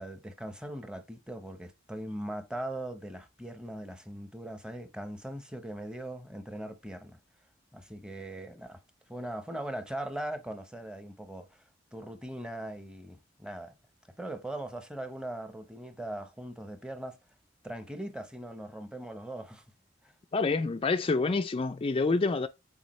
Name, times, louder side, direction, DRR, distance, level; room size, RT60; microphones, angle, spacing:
voice 1, 0.0-7.2 7.7-8.8 9.1-11.6 11.9-13.7 14.2-17.2 17.6-19.6 20.0-20.1, right 1 dB, 5° right, 0.8 m, -40 dB
voice 2, 20.3-22.5, left 3 dB, 30° left, 0.4 m, -27 dB
8.2 x 4.1 x 3.1 m
head